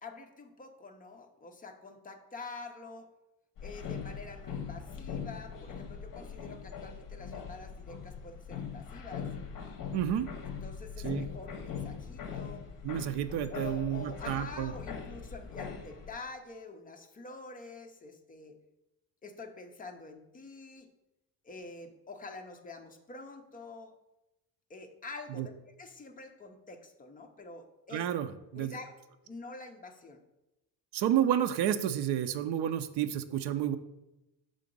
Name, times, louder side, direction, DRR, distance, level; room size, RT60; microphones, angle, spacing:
voice 1, 0.0-3.1 3.6-9.3 10.6-12.6 13.5-18.5 19.2-20.9 21.4-23.9 24.7-28.1 28.5-29.0 29.2-30.2, left 3 dB, 20° left, 4 dB, 0.5 m, -46 dB
sound 1, 3.6-16.1, left 7 dB, 50° left, 0.8 m, -41 dB
voice 2, 9.9-10.3 11.0-11.3 12.8-14.7 25.4-25.5 27.9-28.3 28.5-28.7 30.9-33.8, right 10 dB, 65° right, 10 dB, 0.5 m, -30 dB
5.8 x 3.8 x 5.2 m, 0.94 s
cardioid pair, 170°, 43 cm